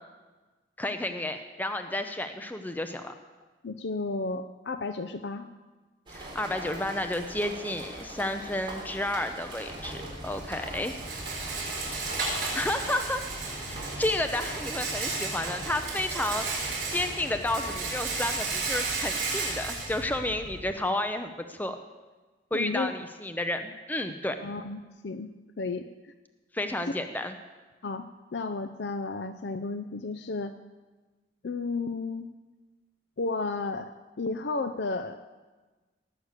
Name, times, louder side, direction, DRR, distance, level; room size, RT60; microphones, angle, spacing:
voice 1, 0.8-3.1 6.1-10.9 12.5-13.2 13.7-21.8 22.5-24.4 26.5-27.4, left 1 dB, 10° left, 7 dB, 0.6 m, -31 dB
voice 2, 3.6-5.5 22.5-22.9 24.4-25.3 25.6-26.1 27.8-28.1 28.3-30.5 31.4-32.3 33.2-33.9 34.2-35.2, left 3 dB, 70° left, 9 dB, 0.6 m, -33 dB
sound 1, 6.1-18.3, right 1 dB, 30° right, 3.6 m, -42 dB
Rattle, 9.7-20.7, right 3 dB, 50° right, 5.9 m, -34 dB
18.5 x 6.7 x 8.1 m, 1.3 s
head